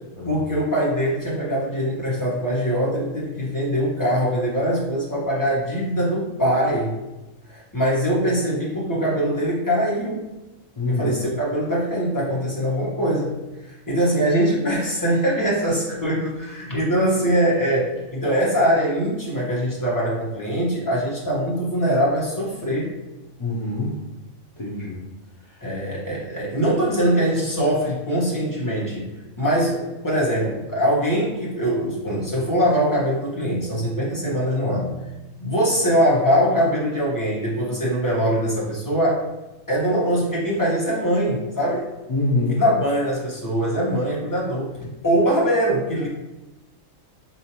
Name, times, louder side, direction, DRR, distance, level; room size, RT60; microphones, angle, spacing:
voice 1, 0.2-7.0 7.5-10.3 10.8-13.4 13.9-22.9 25.6-29.1 29.4-34.9 35.4-39.2 39.7-41.9 42.5-44.7 45.0-46.1, equal, 15° left, -6 dB, 1.0 m, -22 dB
voice 2, 10.8-11.2 23.4-24.0 24.6-25.0 25.4-25.7 42.1-42.6, left 2 dB, 35° left, -7 dB, 0.5 m, -25 dB
4.9 x 2.7 x 2.9 m, 1.0 s
omnidirectional pair, 1.4 m